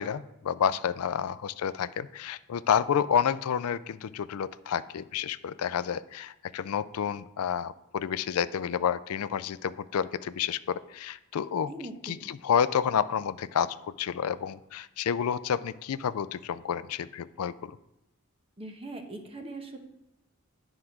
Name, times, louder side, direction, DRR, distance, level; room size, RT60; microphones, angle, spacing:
voice 1, 0.0-11.7 12.0-17.8, left 8 dB, 80° left, 15 dB, 0.4 m, -29 dB
voice 2, 11.7-12.3 18.6-19.8, right 2 dB, 25° right, 4 dB, 1.1 m, -41 dB
9.9 x 4.8 x 5.9 m, 0.89 s
head